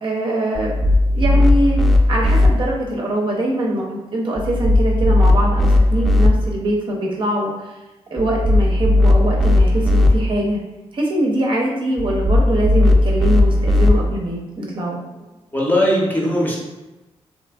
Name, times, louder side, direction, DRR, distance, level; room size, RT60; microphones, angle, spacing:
voice 1, 0.0-1.8 2.1-7.8 8.1-10.6 10.9-15.0, right 1 dB, 45° right, -2 dB, 0.6 m, -22 dB
sound 1, 0.5-2.5 4.4-6.3 8.2-10.1 12.0-13.9, left 1 dB, ahead, 0.3 m, -15 dB
voice 2, 15.5-16.6, equal, 15° left, -4 dB, 0.8 m, -18 dB
2.7 x 2.4 x 2.3 m, 1.1 s
cardioid pair, 70°, 11 cm